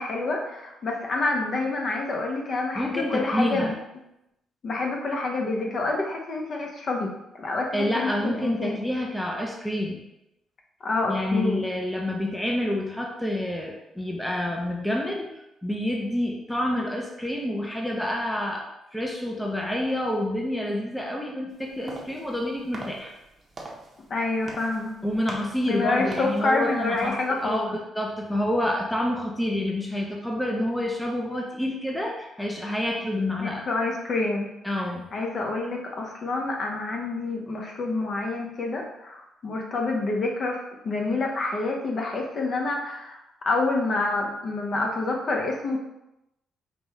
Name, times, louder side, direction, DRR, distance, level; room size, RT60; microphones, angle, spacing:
voice 1, 0.0-3.7 4.6-8.8 10.8-11.7 24.1-24.9 25.7-27.8 33.4-34.5 35.1-43.2 43.4-45.8, left 3 dB, 50° left, 0 dB, 0.8 m, -27 dB
voice 2, 2.8-3.8 7.7-10.0 11.1-23.1 25.0-33.7 34.6-35.1, left 1 dB, 5° left, 0 dB, 0.5 m, -28 dB
sound 1, 21.5-27.6, right 2 dB, 35° right, 0.8 m, -43 dB
5.2 x 2.3 x 3.0 m, 0.88 s
cardioid pair, 90°, 0 cm